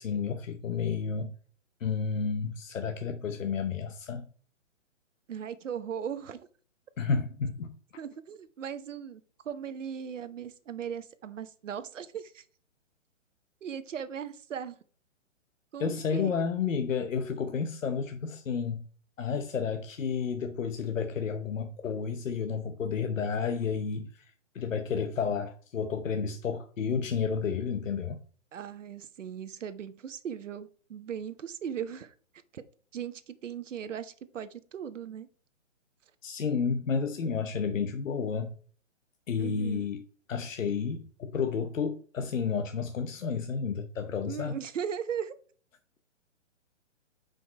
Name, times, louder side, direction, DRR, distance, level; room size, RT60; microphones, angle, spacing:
voice 1, 0.0-1.3 1.8-4.3 7.0-7.8 15.8-18.9 19.2-24.2 24.5-28.2 36.2-38.6 39.3-44.6, left 6 dB, 80° left, 1.0 m, -31 dB
voice 2, 5.3-6.5 8.0-12.4 13.6-14.7 15.7-16.3 28.5-32.1 32.5-32.6 32.9-35.3 39.4-39.9 44.2-45.4, right 8 dB, 70° right, 1.0 m, -38 dB
6.2 x 5.2 x 4.3 m
hypercardioid pair, 150°, 38 cm